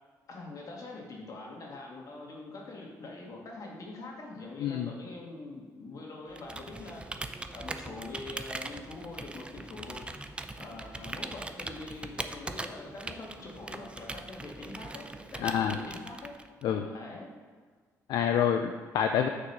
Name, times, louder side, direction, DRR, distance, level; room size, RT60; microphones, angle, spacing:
voice 1, 0.3-7.0 7.5-10.1 10.6-16.3 16.9-17.3, left 3 dB, 55° left, -1 dB, 1.9 m, -44 dB
Computer keyboard, 6.3-16.6, right 2 dB, 15° right, 0.5 m, -41 dB
voice 2, 15.4-15.8 16.6-16.9 18.1-19.3, left 8 dB, 75° left, 5 dB, 0.4 m, -27 dB
6.5 x 3.7 x 5.9 m, 1.5 s
supercardioid pair, 70°, 7 cm